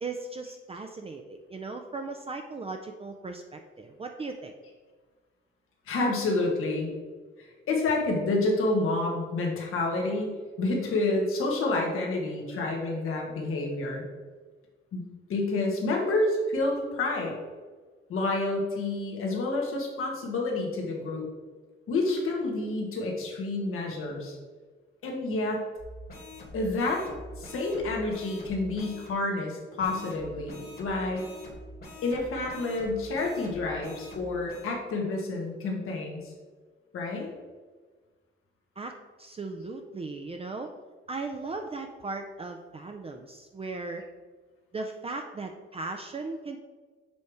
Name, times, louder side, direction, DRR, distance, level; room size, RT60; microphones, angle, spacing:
voice 1, 0.0-4.5 38.8-38.9 39.2-40.7 41.1-44.0 44.7-46.6, right 3 dB, 30° right, 4 dB, 0.5 m, -37 dB
voice 2, 5.9-6.9 7.4-14.0 14.9-15.0 15.3-17.3 18.1-21.2 21.9-24.4 25.0-25.6 26.5-27.0 27.4-31.2 32.0-36.3 36.9-37.3, left 2 dB, 85° left, 0 dB, 1.4 m, -29 dB
sound 1, 25.8-29.2 29.8-34.7, left 1 dB, 45° left, 1.7 m, -45 dB
7.0 x 3.2 x 4.8 m, 1.4 s
cardioid pair, 95°, 21 cm